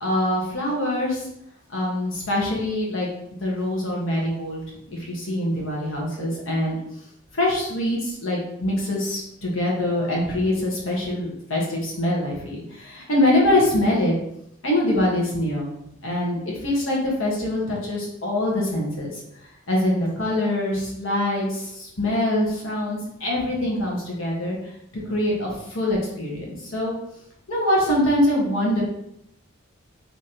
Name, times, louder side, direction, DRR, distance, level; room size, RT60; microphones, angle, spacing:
voice 1, 0.0-1.3 1.7-3.1 3.4-4.6 4.9-6.8 7.3-14.1 14.6-15.7 16.0-19.2 19.7-24.6 25.0-26.9 27.5-28.8, left 1 dB, 75° left, -3 dB, 1.5 m, -24 dB
3.5 x 3.1 x 4.3 m, 0.76 s
head